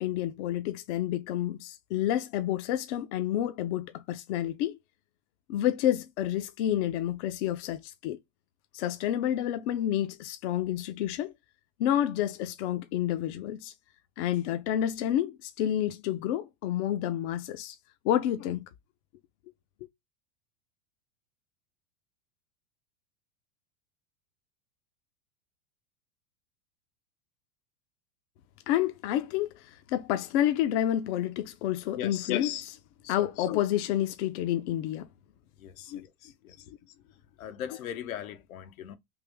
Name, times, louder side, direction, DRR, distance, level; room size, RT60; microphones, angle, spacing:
voice 1, 0.0-4.8 5.5-8.2 8.7-11.3 11.8-13.7 14.2-17.8 18.0-18.6 28.7-32.8 33.1-35.1 35.9-36.0 36.7-36.8, left 12 dB, 55° left, 0.6 m, -29 dB
voice 2, 31.9-32.3 33.0-33.3 35.6-36.7 37.4-39.0, left 9 dB, 80° left, 0.9 m, -40 dB
3.5 x 2.5 x 3.4 m
hypercardioid pair, 110°, 41 cm